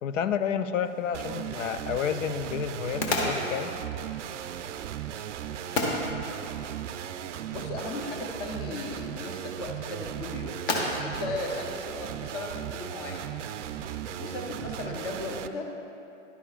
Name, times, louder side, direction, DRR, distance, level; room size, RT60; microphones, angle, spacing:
voice 1, 0.0-3.7, left 8 dB, 70° left, 11 dB, 0.5 m, -30 dB
sound 1, 0.8-12.5, left 2 dB, 45° left, 1.3 m, -36 dB
sound 2, 1.1-15.5, right 10 dB, 65° right, 0.5 m, -37 dB
voice 2, 7.5-13.4 13.7-13.9 14.2-15.7, left 2 dB, 20° left, 2 dB, 0.5 m, -37 dB
11.5 x 9.9 x 2.4 m, 2.9 s
hypercardioid pair, 145°, 39 cm